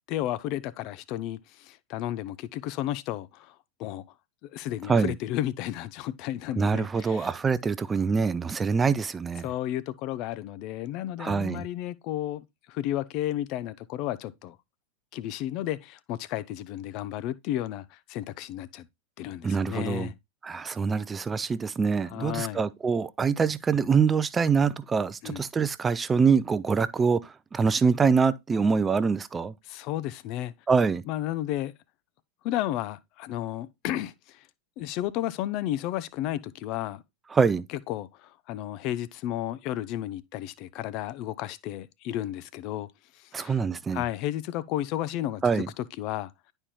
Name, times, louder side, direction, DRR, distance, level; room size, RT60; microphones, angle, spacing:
voice 1, 0.1-4.0 4.4-7.3 9.4-14.6 15.1-18.9 19.2-20.1 22.1-22.6 25.2-25.4 29.7-30.5 31.1-31.7 32.4-34.5 34.8-37.0 37.9-42.9 43.1-43.6 43.9-46.3, left 13 dB, 40° left, 0.5 m, -33 dB
voice 2, 6.6-9.4 11.2-11.6 19.4-20.1 20.4-29.5 30.7-31.0 37.3-37.6 43.3-44.0 45.4-45.7, right 5 dB, 15° right, 0.4 m, -25 dB
11.0 x 4.4 x 2.2 m
figure-of-eight pair, 90°, 0 cm